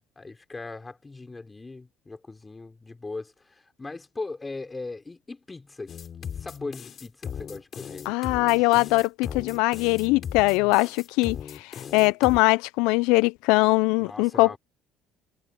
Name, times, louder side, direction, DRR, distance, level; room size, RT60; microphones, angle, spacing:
voice 1, 0.2-8.1 14.0-14.6, left 3 dB, 20° left, 4.1 m, -39 dB
sound 1, 5.9-12.4, left 8 dB, 45° left, 6.1 m, -38 dB
voice 2, 8.1-14.6, left 23 dB, 85° left, 0.4 m, -22 dB
supercardioid pair, 90°, 0 cm